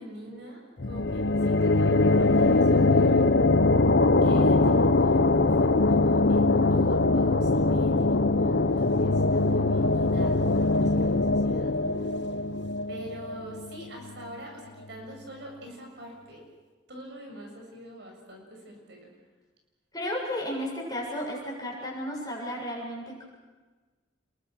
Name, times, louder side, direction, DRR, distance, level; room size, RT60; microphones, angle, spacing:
voice 1, 0.0-3.2 4.2-8.1 8.4-11.7 12.0-12.1 12.9-16.5 16.9-19.1, equal, 60° right, 1 dB, 7.2 m, -45 dB
sound 1, 0.8-14.2, left 2 dB, 60° left, 1.0 m, -22 dB
voice 2, 19.9-23.3, equal, 20° left, -2 dB, 7.4 m, -33 dB
29.5 x 22.0 x 6.3 m, 1.3 s
head